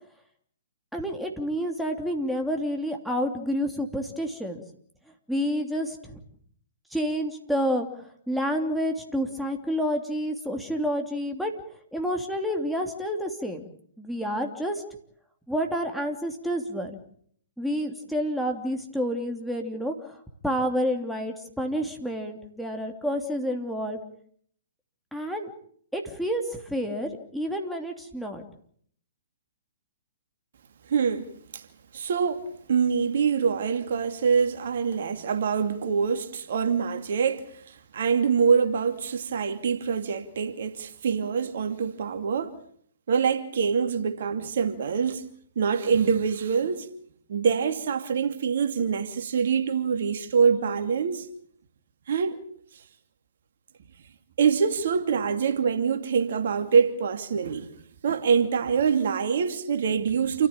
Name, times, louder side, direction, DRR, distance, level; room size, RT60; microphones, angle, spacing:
voice 1, 0.9-4.6 5.3-6.2 6.9-11.5 11.9-13.6 14.0-14.8 15.5-17.0 17.6-24.0 25.1-25.5 25.9-28.4, equal, ahead, 3.1 m, -29 dB
voice 2, 30.9-31.6 31.9-42.6 43.1-45.2 45.6-46.9 47.3-51.3 52.1-52.4 52.7-52.8 54.4-57.7 58.0-60.5, right 6 dB, 60° right, 2.5 m, -25 dB
28.5 x 14.5 x 8.9 m
figure-of-eight pair, 125°, 0 cm